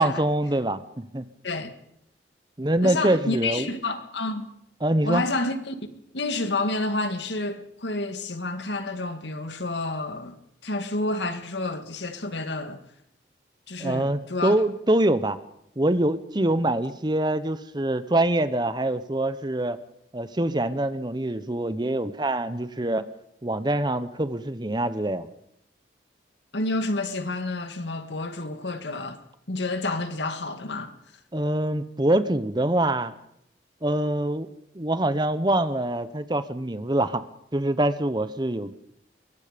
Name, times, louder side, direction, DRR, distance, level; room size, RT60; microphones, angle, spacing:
voice 1, 0.0-1.2 2.6-3.7 4.8-5.2 13.8-15.4 15.8-19.8 20.1-23.1 23.4-25.3 31.3-33.1 33.8-34.5 34.7-37.2 37.5-38.7, right 1 dB, 25° right, 0.9 m, -24 dB
voice 2, 2.8-4.5 5.0-5.8 6.1-10.4 10.6-12.8 13.7-14.6 26.5-29.2 29.5-30.9, left 2 dB, 75° left, 1.9 m, -29 dB
23.0 x 22.0 x 5.2 m
head